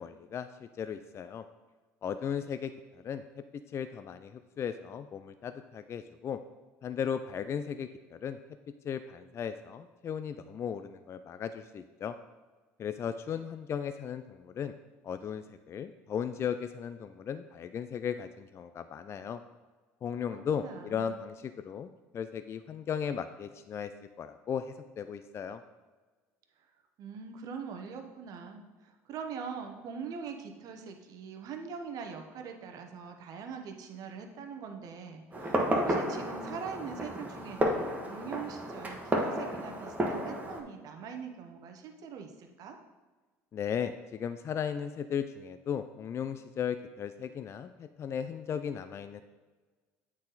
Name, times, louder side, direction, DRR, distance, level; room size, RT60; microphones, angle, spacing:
voice 1, 0.0-1.4 2.0-3.2 3.7-6.4 6.8-8.4 8.8-12.1 12.8-14.7 15.0-19.4 20.0-23.9 24.2-25.6 43.5-49.2, left 8 dB, 40° left, 10 dB, 0.4 m, -36 dB
voice 2, 20.3-21.2 27.0-42.8, right 6 dB, 55° right, 4 dB, 0.9 m, -43 dB
Fireworks, 35.3-40.6, right 1 dB, 20° right, 1.3 m, -32 dB
8.6 x 4.1 x 4.0 m, 1.3 s
hypercardioid pair, 80°, 7 cm